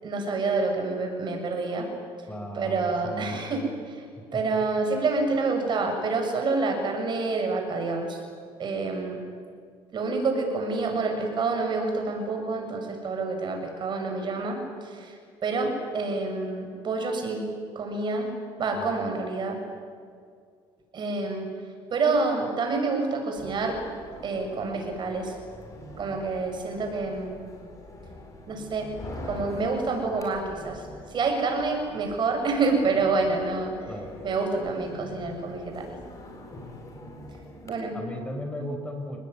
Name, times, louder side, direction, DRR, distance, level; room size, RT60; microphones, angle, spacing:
voice 1, 0.0-1.9 2.5-4.0 4.3-8.2 8.6-9.2 9.9-17.4 17.8-18.3 18.6-19.6 20.9-21.5 21.9-23.8 24.2-25.4 26.0-27.4 28.5-28.9 29.2-33.7 34.2-35.9 37.6-38.0 38.6-38.7, right 3 dB, 45° right, 3 dB, 7.1 m, -28 dB
voice 2, 2.3-3.4 4.2-4.4 18.7-18.9 33.9-34.1 37.9-39.2, left 1 dB, 10° left, 4 dB, 5.6 m, -36 dB
sound 1, 23.4-37.7, left 1 dB, 30° left, 7.4 m, -44 dB
29.5 x 20.0 x 9.8 m, 2.2 s
cardioid pair, 110°, 11 cm